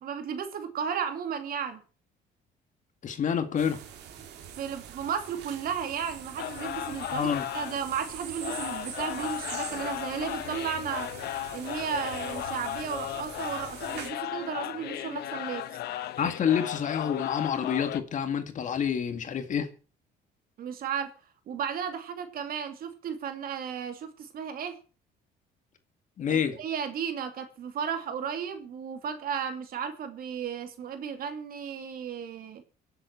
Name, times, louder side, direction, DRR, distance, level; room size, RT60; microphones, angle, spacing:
voice 1, 0.0-1.8 4.6-7.3 7.5-11.1 11.5-15.6 20.6-21.1 21.5-24.8 26.3-32.6, right 7 dB, 60° right, 2.6 m, -34 dB
voice 2, 3.0-3.8 7.1-7.5 16.2-19.7 26.2-26.6, left 8 dB, 50° left, 2.2 m, -28 dB
sound 1, 3.6-14.1, right 9 dB, 80° right, 2.5 m, -44 dB
sound 2, 6.4-18.0, left 13 dB, 75° left, 1.2 m, -36 dB
23.5 x 8.0 x 4.6 m
cardioid pair, 110°, 17 cm